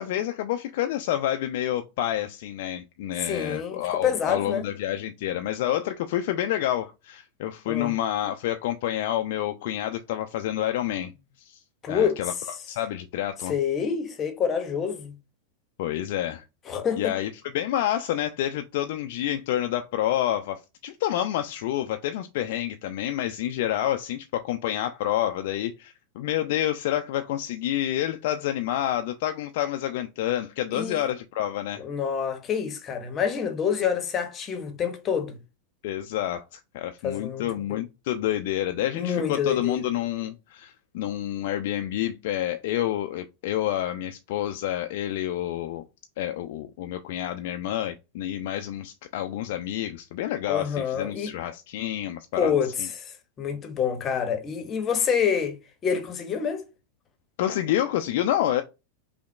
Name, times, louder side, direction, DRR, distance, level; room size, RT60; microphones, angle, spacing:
voice 1, 0.0-11.1 11.4-11.6 11.9-12.3 12.7-13.6 15.8-16.4 17.0-31.8 35.8-45.8 46.2-52.5 52.8-52.9 57.4-58.6, left 12 dB, 50° left, 0.3 m, -28 dB
voice 2, 3.2-4.7 7.7-7.9 11.8-12.2 13.5-15.1 16.7-17.1 30.7-31.0 31.8-35.4 37.0-37.8 38.9-39.8 50.5-51.3 52.4-53.1 53.4-55.6 55.8-56.6, left 7 dB, 25° left, 0.8 m, -27 dB
5.5 x 2.1 x 2.3 m
figure-of-eight pair, 90°, 0 cm